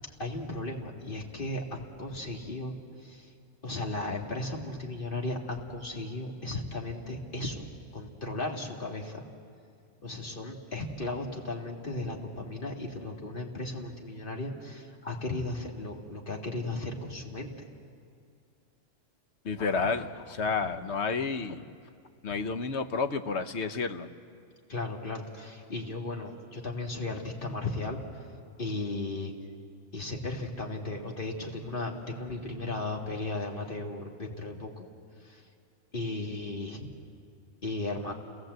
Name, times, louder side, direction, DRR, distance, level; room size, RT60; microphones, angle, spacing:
voice 1, 0.2-2.7 3.0-3.3 3.6-7.6 7.9-9.2 10.0-17.5 24.7-28.0 28.6-29.3 29.9-34.8 35.2-35.4 35.9-36.9 37.6-38.1, left 2 dB, 45° left, 1 dB, 2.3 m, -35 dB
voice 2, 19.4-21.6 22.2-24.1, left 4 dB, 65° left, 8 dB, 1.2 m, -30 dB
29.5 x 17.5 x 7.9 m, 2.3 s
omnidirectional pair, 1.3 m